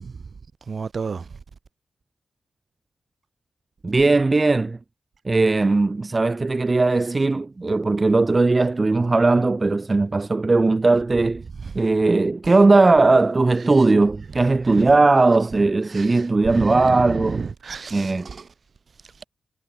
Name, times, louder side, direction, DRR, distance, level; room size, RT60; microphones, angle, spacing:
voice 1, 0.7-1.2 11.8-11.9 14.8-14.9 15.9-16.1 16.5-18.4, right 5 dB, 45° right, 7.4 m, -30 dB
voice 2, 3.8-4.8 5.2-11.4 11.7-17.5 17.9-18.3, right 3 dB, 25° right, 1.2 m, -18 dB
wide cardioid pair, 160°, 0 cm